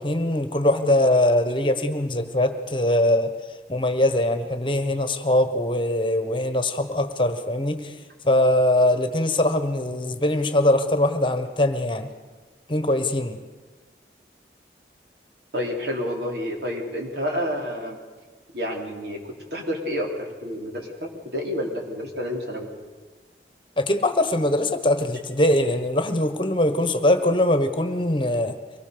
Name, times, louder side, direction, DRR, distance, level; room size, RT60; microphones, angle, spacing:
voice 1, 0.0-3.3 3.7-7.9 8.2-12.1 12.7-13.4 23.8-28.6, left 1 dB, 30° left, 9 dB, 1.3 m, -22 dB
voice 2, 15.5-18.0 18.5-19.2 19.5-22.7, equal, 75° right, 0 dB, 4.2 m, -29 dB
24.0 x 19.0 x 7.0 m, 1.4 s
head